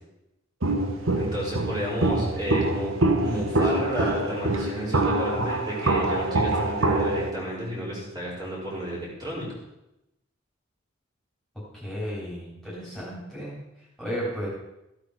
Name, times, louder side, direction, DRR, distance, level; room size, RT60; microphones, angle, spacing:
Walk footsteps, 0.6-7.3, right 2 dB, 80° right, 1.3 m, -25 dB
voice 1, 1.1-2.9 3.2-9.5, equal, 20° right, -6 dB, 4.3 m, -32 dB
voice 2, 3.2-3.6 11.7-13.6 14.0-14.5, equal, ahead, -7 dB, 3.7 m, -34 dB
14.5 x 8.4 x 4.9 m, 0.89 s
head